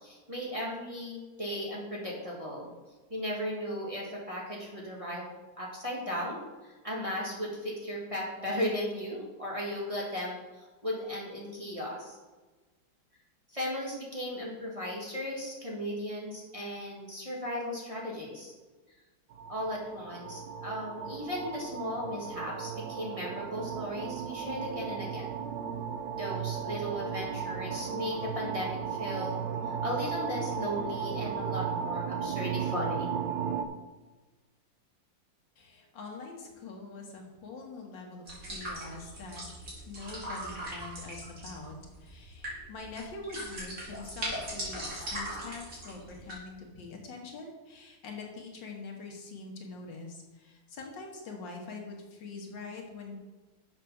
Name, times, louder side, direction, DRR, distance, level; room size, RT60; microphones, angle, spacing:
voice 1, 0.0-2.7 3.1-5.2 5.6-12.2 13.5-18.5 19.5-25.3 26.2-29.4 29.7-33.1, equal, 20° right, -4 dB, 1.6 m, -36 dB
sound 1, 19.3-33.7, right 7 dB, 70° right, 1.1 m, -35 dB
voice 2, 35.6-53.2, left 3 dB, 75° left, 1 dB, 2.1 m, -44 dB
sound 2, 38.3-46.3, equal, 45° right, 3.3 m, -40 dB
7.0 x 5.9 x 5.8 m, 1.3 s
omnidirectional pair, 2.0 m